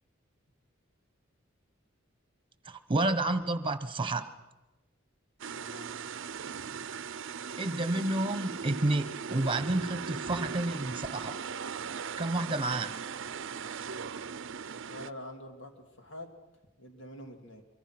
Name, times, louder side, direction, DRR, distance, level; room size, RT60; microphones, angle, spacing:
voice 1, 2.6-4.3 7.6-11.4 12.2-13.0, right 2 dB, 25° right, 12 dB, 1.2 m, -30 dB
sound 1, 5.4-15.1, right 6 dB, 65° right, 0.7 m, -39 dB
voice 2, 5.5-5.9 14.9-16.4 16.8-17.6, left 1 dB, 65° left, 4 dB, 2.9 m, -46 dB
24.5 x 23.5 x 6.2 m, 1.1 s
head